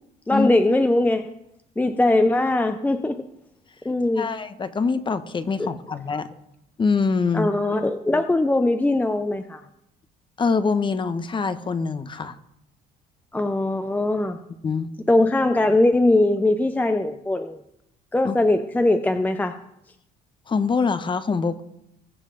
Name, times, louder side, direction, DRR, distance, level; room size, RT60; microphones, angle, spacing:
voice 1, 0.3-1.2 1.8-3.3 3.8-4.3 5.6-5.7 7.3-9.6 13.3-14.4 15.1-17.6 18.1-19.6, left 2 dB, 10° left, 9 dB, 0.6 m, -21 dB
voice 2, 4.2-6.3 6.8-7.5 10.4-12.4 14.6-14.9 18.2-18.4 20.5-21.6, left 4 dB, 30° left, 12 dB, 1.0 m, -24 dB
21.0 x 7.3 x 3.9 m, 0.80 s
cardioid pair, 110°, 17 cm